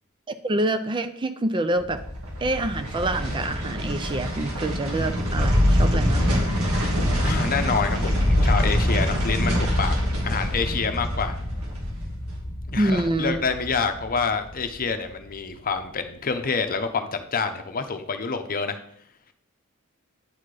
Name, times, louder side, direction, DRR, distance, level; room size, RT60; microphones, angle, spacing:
voice 1, 0.3-2.0 2.4-6.5 12.8-13.4, right 1 dB, 20° right, 10 dB, 0.4 m, -26 dB
sound 1, 1.7-14.9 15.3-15.4, equal, 80° right, 2.3 m, -25 dB
voice 2, 7.2-9.9 10.2-11.4 12.7-18.8, left 5 dB, 40° left, 8 dB, 0.8 m, -27 dB
9.6 x 4.3 x 4.9 m, 0.69 s
head